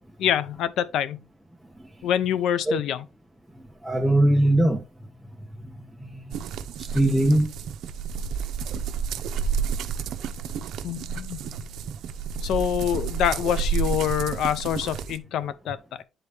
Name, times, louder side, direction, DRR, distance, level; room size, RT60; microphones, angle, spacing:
voice 1, 0.2-1.2 2.0-3.0 10.8-11.4 12.4-16.0, left 10 dB, 80° left, 0.6 m, -26 dB
voice 2, 3.8-4.8 6.0-6.3 6.8-7.5, right 1 dB, 5° right, 0.8 m, -21 dB
sound 1, 6.3-15.2, right 6 dB, 80° right, 0.6 m, -30 dB
9.9 x 4.1 x 3.4 m
cardioid pair, 90°, 0 cm